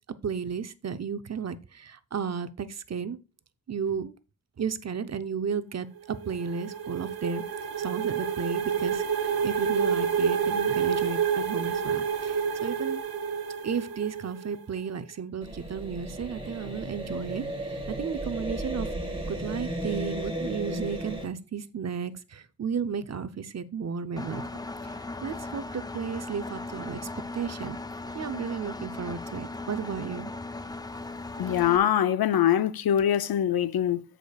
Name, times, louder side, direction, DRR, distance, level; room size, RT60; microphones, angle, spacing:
voice 1, 0.2-3.2 3.7-4.1 4.6-7.4 7.8-13.0 13.6-18.9 19.3-24.5 24.8-24.9 25.2-27.0 27.3-27.8 28.1-30.3, right 6 dB, 45° right, 0.6 m, -33 dB
sound 1, 6.0-14.6, right 7 dB, 85° right, 0.9 m, -29 dB
sound 2, 15.4-21.3, right 1 dB, 15° right, 1.7 m, -34 dB
Engine, 24.2-31.8, left 2 dB, 10° left, 0.4 m, -38 dB
voice 2, 31.4-34.0, left 10 dB, 90° left, 0.5 m, -23 dB
14.5 x 5.0 x 2.3 m
wide cardioid pair, 110°, 36 cm